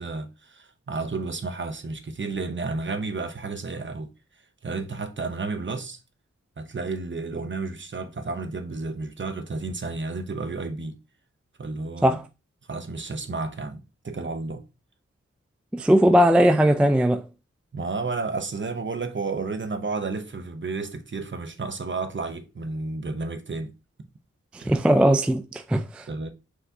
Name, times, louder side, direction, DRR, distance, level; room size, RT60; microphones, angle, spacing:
voice 1, 0.0-4.1 4.6-6.0 6.6-11.0 11.6-12.2 12.7-14.6 17.7-23.7 24.0-24.1 24.6-24.7 26.1-26.3, right 3 dB, 40° right, 0.7 m, -32 dB
voice 2, 15.7-17.2 24.5-26.0, equal, 5° right, 0.3 m, -19 dB
4.7 x 3.8 x 2.7 m
wide cardioid pair, 70°, 29 cm